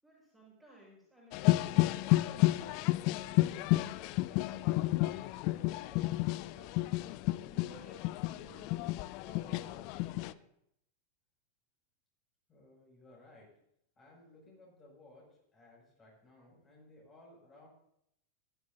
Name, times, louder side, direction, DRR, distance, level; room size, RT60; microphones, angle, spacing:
voice 1, 0.0-6.7 7.4-8.8 9.2-10.4, right 1 dB, 5° right, -5 dB, 5.4 m, -58 dB
sound 1, 1.3-10.3, left 19 dB, 45° left, 0.3 m, -31 dB
voice 2, 12.5-13.5 14.0-15.2 15.5-17.7, left 2 dB, 20° left, -3 dB, 6.1 m, -59 dB
16.0 x 13.0 x 2.7 m, 0.75 s
figure-of-eight pair, 90°, 0 cm